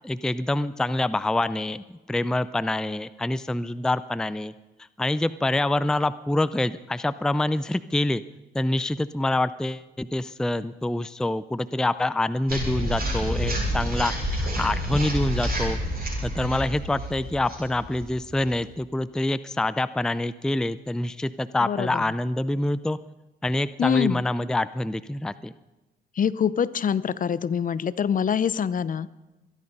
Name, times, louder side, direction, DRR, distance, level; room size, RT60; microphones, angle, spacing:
voice 1, 0.0-4.5 5.0-8.2 8.5-15.8 16.2-23.0 23.4-25.5, left 1 dB, 5° left, 14 dB, 0.5 m, -26 dB
sound 1, 12.5-18.7, equal, 50° right, 7.7 m, -29 dB
voice 2, 21.7-22.0 23.8-24.2 26.2-29.1, left 7 dB, 45° left, 17 dB, 0.7 m, -25 dB
24.5 x 11.0 x 5.4 m, 1.1 s
cardioid pair, 90°, 20 cm